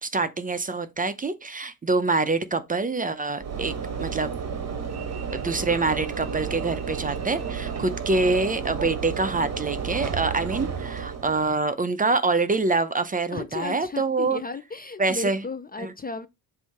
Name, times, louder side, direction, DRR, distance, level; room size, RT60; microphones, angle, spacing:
voice 1, 0.0-3.7 4.0-4.3 5.3-14.4 15.0-15.4 15.8-15.9, right 3 dB, 20° right, 0.6 m, -25 dB
Train / Engine / Alarm, 3.4-11.6, right 6 dB, 40° right, 1.2 m, -32 dB
voice 2, 13.3-16.3, left 4 dB, 25° left, 0.5 m, -34 dB
7.6 x 2.7 x 5.8 m
cardioid pair, 135°, 38 cm